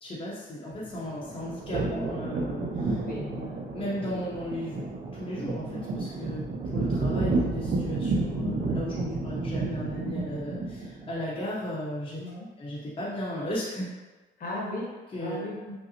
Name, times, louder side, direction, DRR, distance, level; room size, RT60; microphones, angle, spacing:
voice 1, 0.0-3.0 3.7-4.8 5.1-6.4 6.7-12.2 12.6-13.9 15.1-15.5, equal, 30° left, -7 dB, 0.7 m, -35 dB
sound 1, 0.7-11.1, right 3 dB, 40° right, 0.5 m, -31 dB
voice 2, 2.9-3.6 12.2-12.5 14.4-14.9 15.2-15.7, left 1 dB, 50° left, -3 dB, 1.0 m, -36 dB
5.4 x 2.0 x 2.7 m, 1.2 s
cardioid pair, 120°, 19 cm